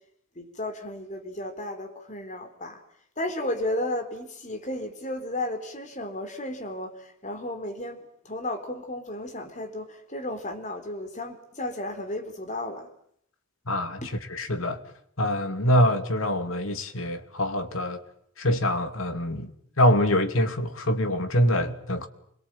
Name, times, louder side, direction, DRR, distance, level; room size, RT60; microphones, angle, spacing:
voice 1, 0.4-2.8 3.2-12.9 14.0-14.1, left 1 dB, 35° left, 4.0 m, -33 dB
voice 2, 13.7-14.8 15.2-18.0 18.4-22.1, equal, 75° left, 2.7 m, -25 dB
28.5 x 22.5 x 9.0 m
head